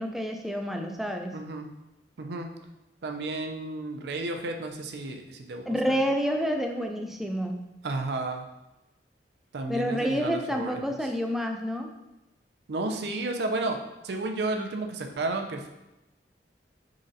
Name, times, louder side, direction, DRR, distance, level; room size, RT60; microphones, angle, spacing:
voice 1, 0.0-1.3 5.7-7.6 9.7-12.0, equal, ahead, 3 dB, 0.3 m, -29 dB
voice 2, 1.3-1.7 2.2-2.5 3.0-6.0 7.8-8.4 9.5-10.8 12.7-13.8 14.0-15.7, right 2 dB, 70° right, 4 dB, 0.5 m, -32 dB
4.1 x 3.8 x 2.6 m, 0.97 s
head